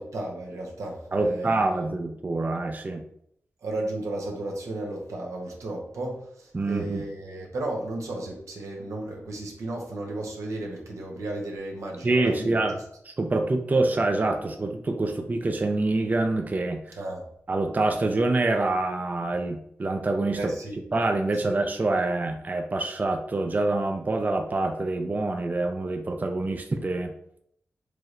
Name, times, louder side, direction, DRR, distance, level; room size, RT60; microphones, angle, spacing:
voice 1, 0.0-1.9 3.6-12.6 17.0-17.3 20.3-20.8 21.3-21.6, right 2 dB, 90° right, -1 dB, 0.9 m, -34 dB
voice 2, 1.1-3.0 6.5-7.0 12.0-12.8 13.0-17.0 17.5-20.5 20.9-27.1, right 2 dB, 35° right, 5 dB, 0.4 m, -26 dB
4.7 x 3.1 x 2.5 m, 0.70 s
cardioid pair, 65°, 5 cm